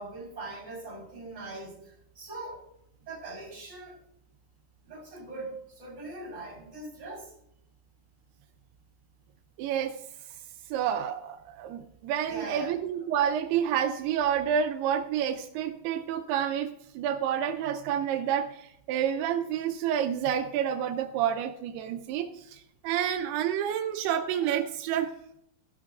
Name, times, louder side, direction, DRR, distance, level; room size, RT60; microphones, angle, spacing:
voice 1, 0.0-2.6 3.0-4.0 4.8-7.3 12.2-12.8, right 2 dB, 20° right, -1 dB, 4.0 m, -41 dB
voice 2, 9.6-10.0 10.7-25.1, right 9 dB, 85° right, 7 dB, 2.6 m, -29 dB
14.5 x 11.5 x 2.4 m, 0.76 s
omnidirectional pair, 4.6 m